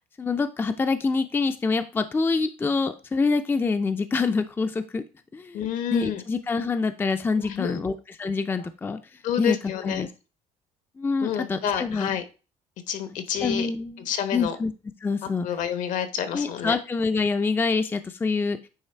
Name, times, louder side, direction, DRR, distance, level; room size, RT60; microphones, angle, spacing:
voice 1, 0.2-5.0 5.3-5.6 5.9-9.0 9.4-9.6 9.8-10.1 11.0-12.1 13.4-14.1 14.3-14.7 15.0-15.5 16.3-18.6, left 4 dB, 15° left, 9 dB, 0.4 m, -26 dB
voice 2, 5.5-6.2 7.4-7.8 9.2-10.1 11.2-12.2 12.9-13.7 14.0-14.6 15.4-16.8, left 9 dB, 70° left, 10 dB, 1.1 m, -29 dB
9.1 x 3.2 x 4.4 m, 0.33 s
cardioid pair, 125°, 14 cm